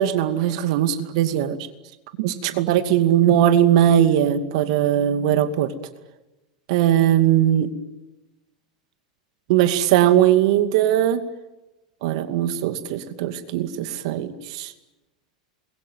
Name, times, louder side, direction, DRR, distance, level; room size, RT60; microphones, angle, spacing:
voice 1, 0.0-1.6 2.2-5.7 6.7-7.7 9.5-11.2 12.0-14.7, right 11 dB, 60° right, 10 dB, 2.4 m, -19 dB
27.0 x 22.5 x 9.3 m, 1.0 s
hypercardioid pair, 95°, 4 cm